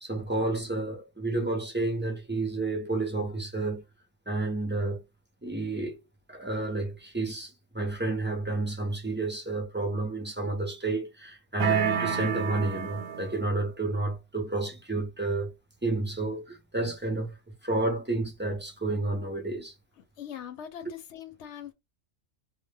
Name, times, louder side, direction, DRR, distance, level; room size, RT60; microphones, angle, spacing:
voice 1, 0.0-3.8 4.3-5.0 5.4-6.0 6.3-15.5 15.8-17.3 17.6-19.7, right 2 dB, 15° right, 0.4 m, -30 dB
sound 1, 11.6-13.5, right 8 dB, 70° right, 0.8 m, -29 dB
voice 2, 20.0-21.7, left 9 dB, 70° left, 0.8 m, -42 dB
2.1 x 2.1 x 3.3 m
omnidirectional pair, 1.3 m